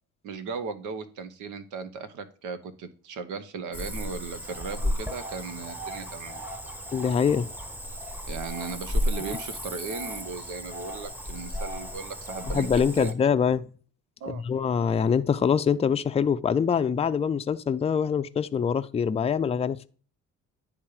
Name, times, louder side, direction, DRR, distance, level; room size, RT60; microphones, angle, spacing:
voice 1, 0.2-6.4 8.3-13.1 14.2-14.4, right 5 dB, 90° right, 0.9 m, -37 dB
Cricket / Frog, 3.7-13.1, left 1 dB, 5° right, 0.9 m, -34 dB
voice 2, 6.9-7.5 12.5-13.7 14.3-19.9, left 7 dB, 20° left, 0.4 m, -24 dB
10.0 x 3.6 x 4.8 m
cardioid pair, 90°, 30 cm